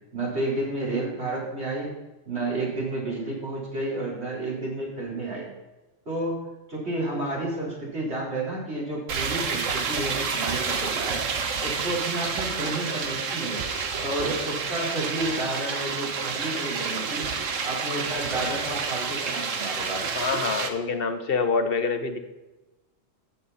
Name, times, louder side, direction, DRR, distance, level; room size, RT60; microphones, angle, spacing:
voice 1, 0.1-1.9 2.3-5.5 6.1-11.2 11.6-13.6 14.0-17.3 17.6-20.0, right 2 dB, 55° right, -5 dB, 4.3 m, -31 dB
sound 1, 9.1-20.7, right 5 dB, 75° right, 1.4 m, -29 dB
voice 2, 20.1-22.2, left 4 dB, 50° left, 8 dB, 1.2 m, -26 dB
13.0 x 8.4 x 4.2 m, 1.1 s
omnidirectional pair, 1.3 m